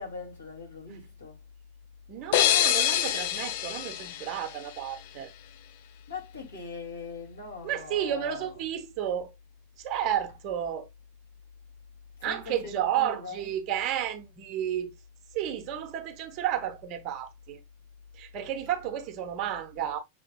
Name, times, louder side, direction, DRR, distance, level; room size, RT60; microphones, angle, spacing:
voice 1, 0.0-1.4 6.1-8.5 12.2-13.5, left 5 dB, 75° left, 2.3 m, -41 dB
voice 2, 2.1-5.3 7.6-9.3 9.8-10.9 12.2-14.9 15.3-17.6 18.1-20.0, right 10 dB, 40° right, 0.9 m, -32 dB
sound 1, 2.3-5.1, left 11 dB, 50° left, 0.4 m, -26 dB
6.9 x 3.2 x 2.3 m
figure-of-eight pair, 90°, 0 cm